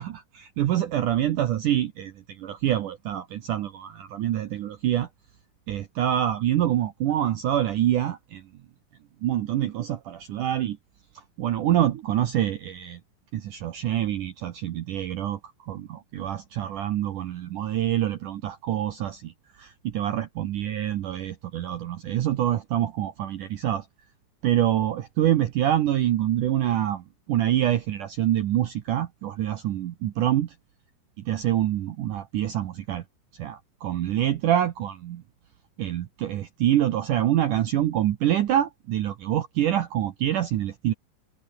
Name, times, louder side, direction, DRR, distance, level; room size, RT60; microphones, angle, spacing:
voice 1, 0.0-5.1 5.7-8.4 9.2-10.8 11.4-13.0 13.3-15.4 15.7-23.9 24.4-30.5 31.3-33.0 33.3-35.2 35.8-40.9, right 12 dB, 85° right, 1.8 m, -26 dB
omnidirectional pair, 5.4 m